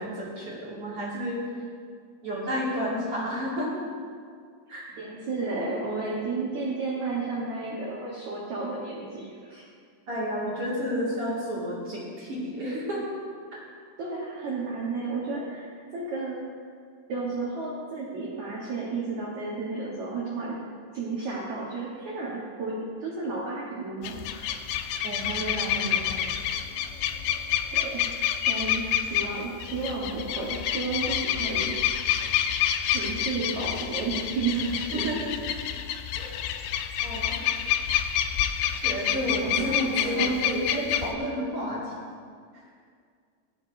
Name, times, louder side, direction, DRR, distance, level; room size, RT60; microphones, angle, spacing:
voice 1, 0.0-1.4 2.2-3.8 4.7-4.9 10.1-13.1 25.0-26.3 34.9-35.4 37.0-37.4 38.8-41.9, equal, 40° right, -8 dB, 2.3 m, -31 dB
voice 2, 5.0-9.6 14.0-16.5 17.1-20.6 20.9-24.5 27.7-28.1 28.5-31.8 32.8-35.1 39.4-40.3, right 3 dB, 70° right, -5 dB, 1.7 m, -32 dB
sound 1, 24.0-41.1, left 10 dB, 85° left, 2.5 m, -28 dB
18.5 x 12.5 x 2.7 m, 2.1 s
omnidirectional pair, 5.3 m